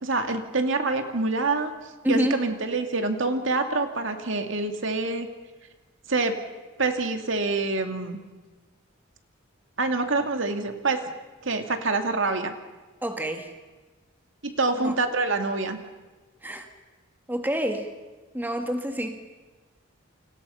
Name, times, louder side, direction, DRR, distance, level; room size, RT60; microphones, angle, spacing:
voice 1, 0.0-1.7 2.1-5.3 6.1-6.4 6.8-8.2 9.8-11.0 11.4-12.5 14.4-15.8, right 3 dB, 65° right, 6 dB, 2.5 m, -26 dB
voice 2, 2.0-2.4 13.0-13.5 14.8-14.9 16.4-16.7 17.3-17.9 18.3-19.2, equal, 10° right, 5 dB, 1.9 m, -28 dB
30.0 x 26.0 x 5.7 m, 1.3 s
head